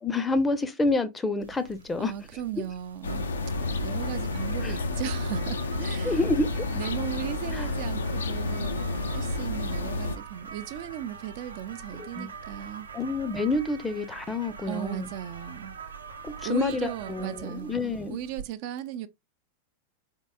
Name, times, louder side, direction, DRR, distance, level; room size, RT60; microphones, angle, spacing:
voice 1, 0.0-2.1 4.6-4.8 6.0-6.5 7.5-7.7 12.0-12.3 12.9-15.1 16.2-18.2, left 3 dB, 15° left, 0.5 m, -28 dB
sound 1, 1.4-18.4, right 5 dB, 80° right, 0.7 m, -44 dB
voice 2, 2.0-3.2 3.6-6.2 6.8-12.9 14.6-15.8 16.4-19.1, right 11 dB, 45° right, 0.3 m, -36 dB
sound 2, 3.0-10.2, left 2 dB, 70° left, 0.4 m, -30 dB
3.9 x 3.6 x 2.2 m
figure-of-eight pair, 90°, 0 cm